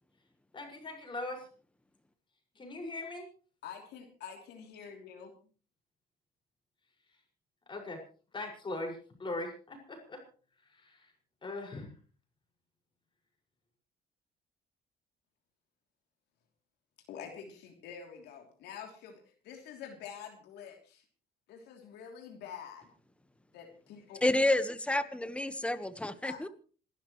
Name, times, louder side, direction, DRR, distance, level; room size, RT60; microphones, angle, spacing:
voice 1, 0.5-1.4 2.6-3.3 7.7-8.0 8.3-10.2 11.4-11.9, left 2 dB, 30° left, 2 dB, 5.8 m, -39 dB
voice 2, 3.6-5.3 17.1-21.0 21.5-22.9 23.5-24.2 26.2-26.4, left 7 dB, 80° left, 2 dB, 3.1 m, -47 dB
voice 3, 24.2-26.5, left 1 dB, 5° left, 12 dB, 1.3 m, -29 dB
27.5 x 12.5 x 3.2 m, 0.40 s
cardioid pair, 110°, 17 cm